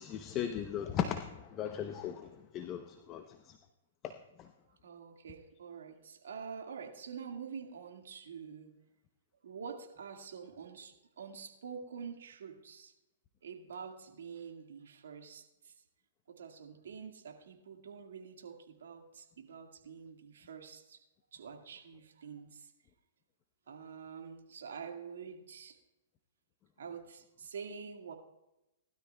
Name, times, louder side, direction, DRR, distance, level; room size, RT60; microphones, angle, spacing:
voice 1, 0.0-3.6 4.0-4.5, left 9 dB, 30° left, 7 dB, 0.7 m, -38 dB
voice 2, 4.6-8.8 9.4-12.9 13.4-15.7 16.3-21.0 21.3-22.7 23.7-25.8 26.8-28.1, right 6 dB, 80° right, 3 dB, 1.8 m, -47 dB
19.5 x 12.5 x 2.3 m, 0.92 s
hypercardioid pair, 135°, 0 cm